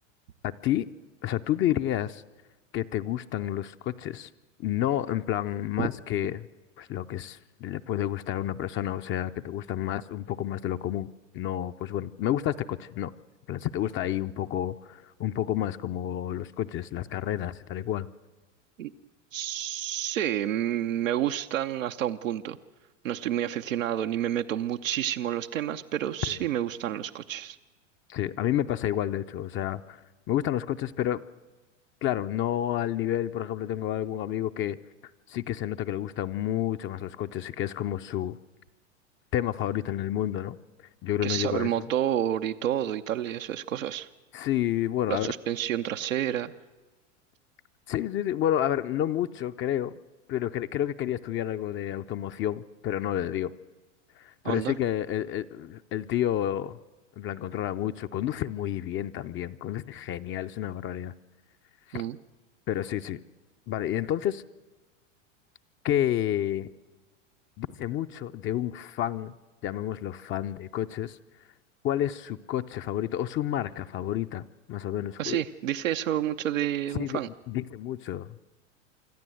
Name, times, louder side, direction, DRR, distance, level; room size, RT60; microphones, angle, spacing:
voice 1, 0.4-0.9 1.2-2.2 2.7-4.3 4.6-6.5 6.8-11.1 11.3-13.1 13.5-18.1 26.3-26.4 28.1-31.2 32.0-34.8 35.3-38.4 39.3-40.6 41.0-41.9 44.3-45.3 47.9-49.9 50.3-53.5 54.2-56.8 57.2-61.1 61.9-62.0 62.7-63.2 63.7-64.4 65.8-66.7 67.6-69.3 69.6-71.2 71.8-75.4 76.9-77.2 77.5-78.4, left 11 dB, 30° left, 10 dB, 0.6 m, -30 dB
voice 2, 19.3-22.6 23.0-27.6 41.2-44.1 45.1-46.5 54.4-54.7 61.9-62.2 75.2-77.3, right 11 dB, 85° right, 6 dB, 0.8 m, -29 dB
25.5 x 13.5 x 7.7 m, 1.2 s
hypercardioid pair, 105°, 38 cm